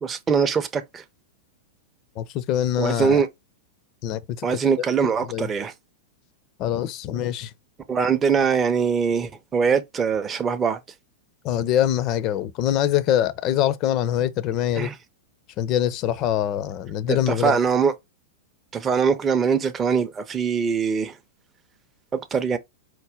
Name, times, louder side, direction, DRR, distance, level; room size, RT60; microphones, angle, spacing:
voice 1, 0.0-1.0 2.8-3.3 4.4-5.7 7.9-10.8 14.8-15.0 17.1-17.9 18.7-21.1 22.3-22.6, right 6 dB, 20° right, 0.5 m, -22 dB
voice 2, 2.2-3.2 4.0-4.6 5.0-5.5 6.6-7.5 11.4-14.9 15.6-17.6, left 11 dB, 35° left, 0.4 m, -24 dB
4.5 x 2.1 x 3.5 m
figure-of-eight pair, 95°, 0 cm